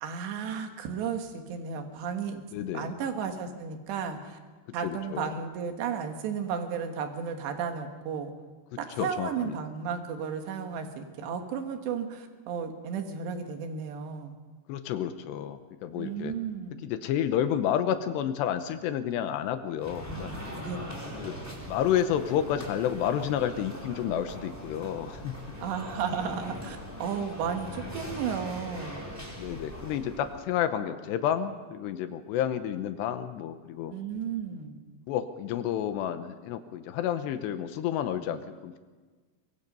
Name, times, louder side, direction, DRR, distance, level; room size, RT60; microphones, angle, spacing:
voice 1, 0.0-2.4 2.7-4.4 4.7-8.3 8.8-14.3 15.9-16.9 20.6-20.8 25.6-29.1 33.9-34.8, right 6 dB, 85° right, 5 dB, 3.9 m, -34 dB
voice 2, 2.5-2.9 4.8-5.3 9.0-9.6 14.7-16.3 16.8-20.3 21.1-21.4 21.7-25.3 29.4-33.9 35.1-38.8, left 10 dB, 85° left, 9 dB, 3.1 m, -30 dB
sound 1, 19.8-30.4, equal, 5° right, 3.6 m, -41 dB
24.0 x 21.0 x 5.4 m, 1.4 s
omnidirectional pair, 4.9 m